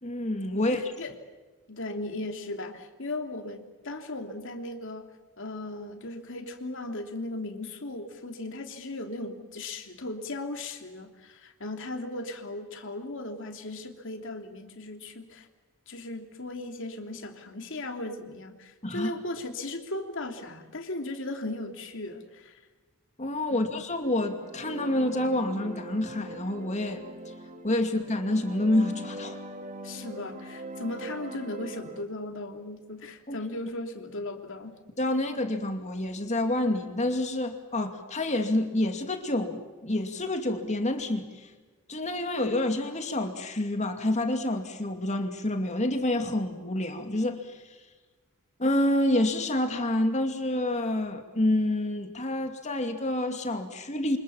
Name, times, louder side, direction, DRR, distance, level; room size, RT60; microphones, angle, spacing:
voice 1, 0.0-0.9 18.8-19.1 23.2-27.0 27.6-29.4 33.3-33.4 35.0-41.4 41.9-47.6 48.6-54.2, left 1 dB, 30° left, 5 dB, 2.6 m, -28 dB
voice 2, 0.5-1.1 1.7-5.1 5.4-15.5 15.9-22.6 23.5-23.8 29.8-34.8, left 2 dB, 60° left, 5 dB, 3.1 m, -37 dB
sound 1, 24.1-32.0, right 1 dB, 35° right, 2.2 m, -41 dB
29.0 x 26.0 x 7.2 m, 1.3 s
head